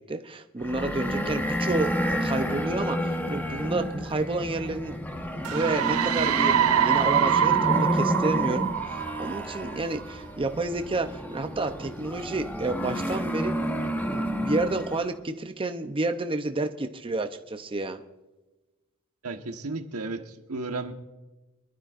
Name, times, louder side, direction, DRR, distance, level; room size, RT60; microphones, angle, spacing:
voice 1, 0.0-5.0 5.5-13.5 14.0-18.0, right 2 dB, 25° right, 7 dB, 0.6 m, -30 dB
sound 1, 0.6-15.1, equal, 10° left, 1.2 m, -30 dB
sound 2, 5.5-10.0, right 9 dB, 70° right, 0.7 m, -24 dB
voice 2, 19.2-20.9, right 3 dB, 85° right, 6 dB, 1.3 m, -34 dB
24.5 x 12.0 x 2.5 m, 1.1 s
head